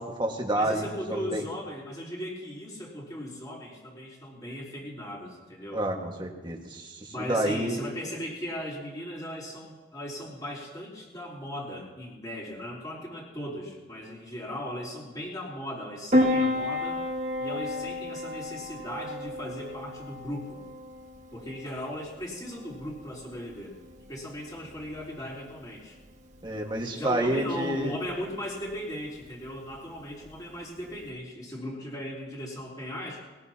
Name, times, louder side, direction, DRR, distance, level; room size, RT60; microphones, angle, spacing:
voice 1, 0.0-1.4 5.7-7.8 26.4-27.9, right 1 dB, 25° right, 1 dB, 1.7 m, -29 dB
voice 2, 0.5-5.8 7.1-17.0 17.4-20.6 21.3-23.8 24.1-26.0 26.9-33.2, equal, 20° left, -4 dB, 3.7 m, -37 dB
Piano, 16.1-31.1, left 1 dB, 40° right, 1.7 m, -33 dB
20.5 x 18.0 x 2.9 m, 1.3 s
head